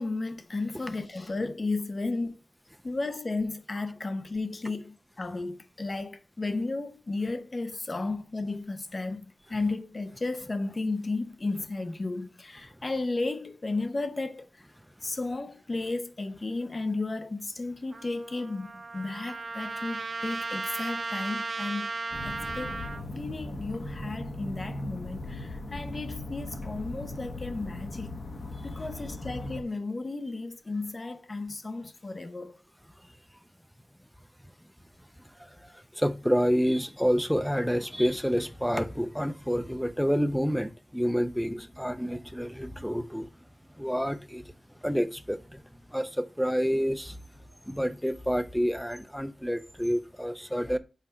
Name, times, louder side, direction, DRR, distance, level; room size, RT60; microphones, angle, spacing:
voice 1, 0.0-2.4 2.8-14.5 15.0-21.9 22.2-28.2 28.6-32.6, left 3 dB, 40° left, 0.8 m, -34 dB
Trumpet, 17.9-23.0, right 3 dB, 70° right, 0.6 m, -35 dB
sound 1, 22.1-29.6, left 2 dB, 65° left, 1.2 m, -38 dB
voice 2, 35.4-43.3 43.8-44.5 44.8-45.6 45.9-47.2 47.7-50.8, equal, ahead, 0.6 m, -28 dB
5.8 x 4.3 x 4.9 m
wide cardioid pair, 75°, 0 cm